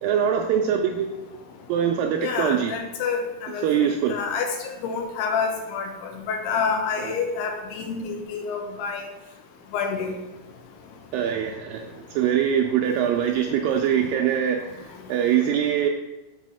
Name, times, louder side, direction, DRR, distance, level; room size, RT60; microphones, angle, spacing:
voice 1, 0.0-1.4 1.7-2.8 3.6-4.2 7.0-7.1 11.1-15.9, right 9 dB, 85° right, 3 dB, 2.0 m, -23 dB
voice 2, 2.2-4.5 4.8-9.0 9.7-10.2, left 5 dB, 90° left, 4 dB, 3.1 m, -28 dB
7.3 x 4.2 x 6.2 m, 1.0 s
omnidirectional pair, 4.5 m